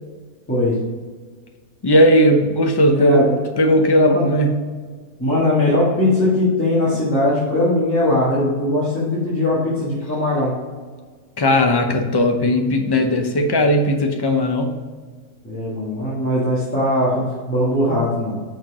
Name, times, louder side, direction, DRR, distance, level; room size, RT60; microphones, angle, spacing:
voice 1, 1.8-3.2 3.6-4.5 11.4-14.7, equal, 30° left, 4 dB, 0.4 m, -16 dB
voice 2, 2.9-3.4 4.0-4.2 5.2-10.5 15.4-18.4, left 1 dB, 10° left, -9 dB, 1.7 m, -20 dB
6.1 x 4.4 x 4.8 m, 1.5 s
omnidirectional pair, 1.5 m